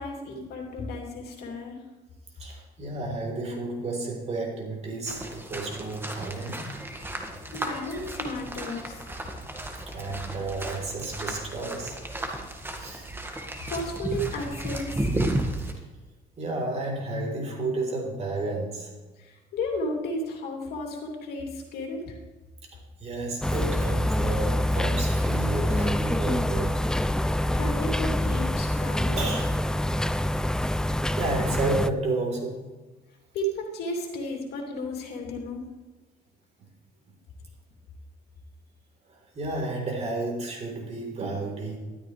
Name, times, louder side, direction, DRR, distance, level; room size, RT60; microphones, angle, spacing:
voice 1, 0.0-1.8 7.5-9.0 13.7-15.1 19.2-22.2 27.5-29.2 33.3-35.6, left 1 dB, 70° left, 1 dB, 2.8 m, -33 dB
voice 2, 2.4-6.6 9.9-12.0 12.7-13.1 16.4-18.9 22.7-26.8 29.2-29.5 30.8-32.6 39.1-41.8, right 2 dB, 40° right, 0 dB, 3.7 m, -32 dB
sound 1, 5.1-15.7, right 1 dB, 15° right, 1.7 m, -34 dB
sound 2, 23.4-31.9, left 1 dB, 5° left, 0.3 m, -26 dB
13.0 x 12.5 x 3.3 m, 1.2 s
cardioid pair, 110°, 17 cm